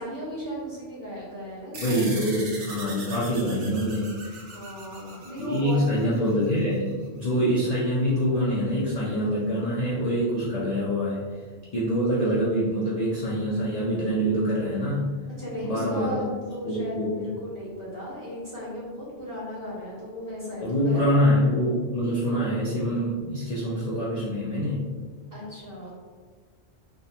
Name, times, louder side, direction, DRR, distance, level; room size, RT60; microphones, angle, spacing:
voice 1, 0.0-2.0 2.5-2.7 4.5-5.8 15.4-21.0 25.3-25.9, equal, 20° right, -8 dB, 0.9 m, -36 dB
sound 1, 1.7-6.6, right 3 dB, 90° right, 1.0 m, -40 dB
voice 2, 1.8-4.4 5.4-11.3 11.7-15.1 15.6-16.3 16.6-17.3 20.6-24.8, equal, 50° left, -8 dB, 0.5 m, -25 dB
3.6 x 2.2 x 2.8 m, 1.5 s
omnidirectional pair, 1.2 m